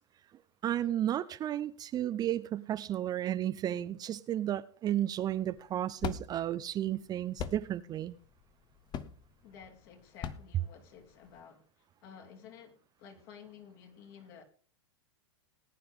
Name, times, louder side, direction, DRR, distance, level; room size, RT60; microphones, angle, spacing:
voice 1, 0.6-8.2, right 11 dB, 25° right, 0.5 m, -33 dB
sound 1, 5.2-11.4, left 8 dB, 30° left, 0.9 m, -42 dB
voice 2, 9.4-14.4, left 7 dB, 50° left, 2.9 m, -53 dB
19.0 x 9.5 x 3.6 m
hypercardioid pair, 100°, 15 cm